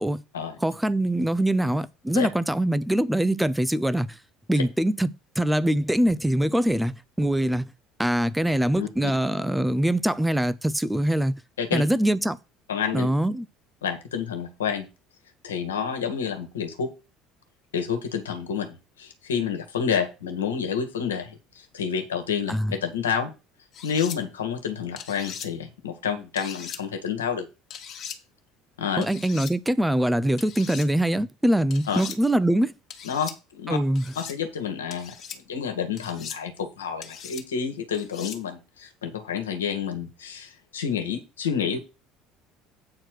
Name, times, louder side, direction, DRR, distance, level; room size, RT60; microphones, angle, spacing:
voice 1, 0.6-4.2 4.5-7.7 8.0-11.3 11.7-12.4 12.9-13.5 22.5-22.7 29.0-32.7 33.7-34.1, right 1 dB, 5° right, 0.7 m, -23 dB
voice 2, 8.8-9.1 11.6-11.8 12.7-13.1 13.8-14.9 15.4-16.9 17.7-23.3 23.8-27.5 28.8-29.1 31.9-32.0 33.0-33.8 34.2-41.8, left 7 dB, 75° left, 1.7 m, -29 dB
sound 1, 23.7-24.2 25.0-25.5 26.4-26.8 27.7-28.2 29.0-29.5 30.4-30.9 31.7-32.2 32.9-33.4 34.0-34.4 34.9-35.4 36.0-36.4 37.0-37.4 37.9-38.4, left 8 dB, 45° left, 1.5 m, -39 dB
8.6 x 4.5 x 6.4 m
figure-of-eight pair, 60°, 0 cm